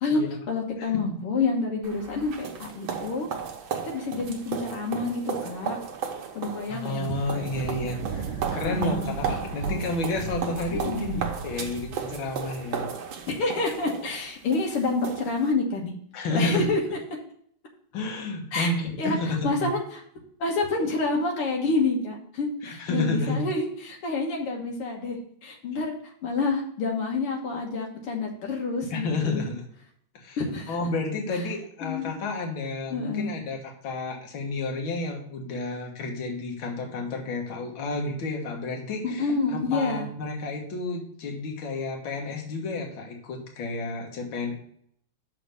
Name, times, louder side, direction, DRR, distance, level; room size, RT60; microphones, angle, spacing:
voice 1, 0.5-3.3 3.8-5.8 6.4-7.1 8.6-9.8 10.7-11.2 13.3-15.9 16.3-16.8 18.5-18.7 19.0-19.2 19.4-19.8 20.4-29.4 30.4-30.8 31.3-31.4 31.8-32.1 32.9-33.3 39.0-40.1, left 3 dB, 85° left, 0 dB, 2.3 m, -28 dB
sound 1, 1.8-15.5, right 7 dB, 70° right, 1.7 m, -35 dB
voice 2, 6.7-12.9 16.1-16.7 17.9-19.4 22.6-23.4 28.9-29.6 30.1-30.4 30.7-44.5, left 2 dB, 65° left, 1 dB, 2.1 m, -31 dB
Thunder, 7.1-13.7, right 6 dB, 85° right, 1.7 m, -36 dB
6.5 x 5.0 x 6.6 m, 0.65 s
omnidirectional pair, 2.4 m